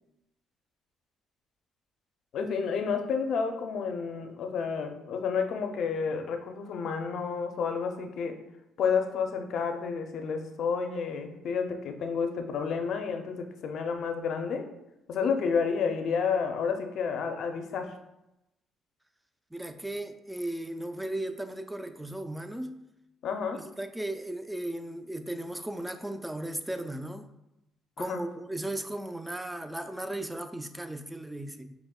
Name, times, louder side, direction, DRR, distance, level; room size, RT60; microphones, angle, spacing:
voice 1, 2.3-8.3 8.8-14.7 15.1-17.9 23.2-23.6 28.0-28.2, left 6 dB, 65° left, 6 dB, 0.5 m, -30 dB
voice 2, 19.5-22.8 23.5-27.2 28.0-31.7, right 1 dB, 10° right, 8 dB, 0.3 m, -36 dB
4.9 x 3.0 x 2.3 m, 0.90 s
cardioid pair, 85°, 0 cm